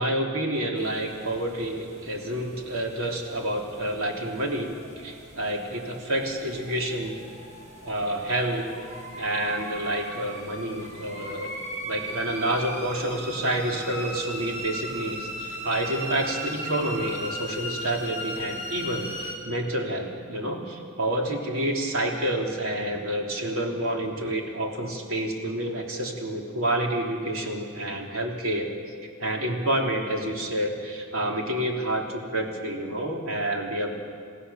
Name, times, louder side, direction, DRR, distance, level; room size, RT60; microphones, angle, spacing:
voice 1, 0.0-4.7 5.0-7.2 7.8-8.6 9.1-11.5 11.8-28.7 29.2-33.9, right 1 dB, 80° right, 0 dB, 3.3 m, -28 dB
sound 1, 0.8-19.3, equal, 35° right, 6.9 m, -38 dB
29.5 x 16.0 x 7.1 m, 2.2 s
head